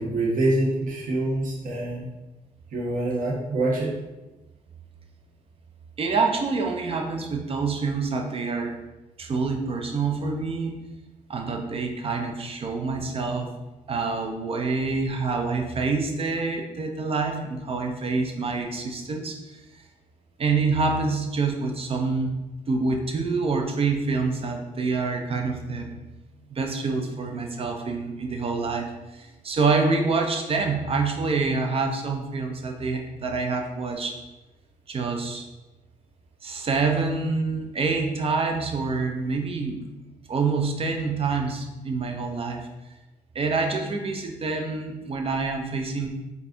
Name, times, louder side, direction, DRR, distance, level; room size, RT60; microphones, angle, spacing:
voice 1, 0.0-2.1 2.7-3.9, right 2 dB, 80° right, -3 dB, 1.6 m, -25 dB
voice 2, 6.0-8.7 9.2-10.8 11.3-13.5 13.9-19.6 20.4-22.3 22.7-26.1 26.5-34.2 34.9-35.5 36.4-39.8 40.3-42.7 43.3-46.1, right 4 dB, 45° right, 3 dB, 1.0 m, -26 dB
5.6 x 4.0 x 4.6 m, 1.1 s
cardioid pair, 110°, 14 cm